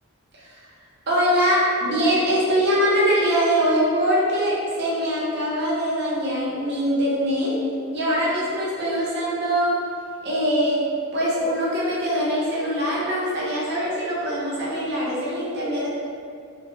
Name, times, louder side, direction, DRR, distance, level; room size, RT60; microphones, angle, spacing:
voice 1, 1.1-7.5 7.9-9.8 10.2-15.9, equal, 50° right, -6 dB, 0.6 m, -23 dB
2.0 x 2.0 x 3.0 m, 2.3 s
head